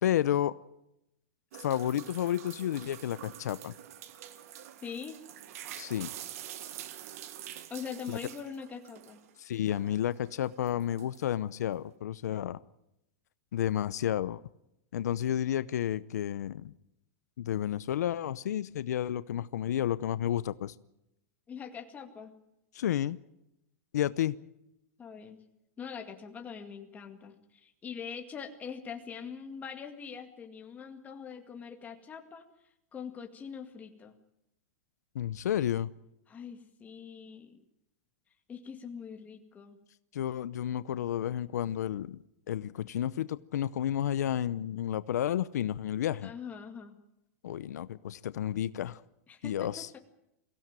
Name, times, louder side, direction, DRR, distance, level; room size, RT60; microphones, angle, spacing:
voice 1, 0.0-0.6 1.6-3.7 5.8-6.1 8.1-8.2 9.4-12.6 13.5-14.4 14.9-16.7 17.4-20.7 22.7-23.2 23.9-24.3 35.1-35.9 40.1-42.2 42.5-46.3 47.4-49.0 49.4-49.9, left 11 dB, 90° left, 16 dB, 0.7 m, -31 dB
sound 1, 1.5-9.3 9.7-11.3, right 11 dB, 65° right, 1.7 m, -46 dB
voice 2, 4.8-5.2 7.7-9.2 21.5-22.3 25.0-25.4 25.8-32.5 32.9-34.1 36.3-37.6 38.5-39.8 46.2-46.9 49.3-50.0, left 6 dB, 15° left, 5 dB, 2.1 m, -43 dB
23.5 x 16.0 x 9.0 m, 0.86 s
supercardioid pair, 150°, 9 cm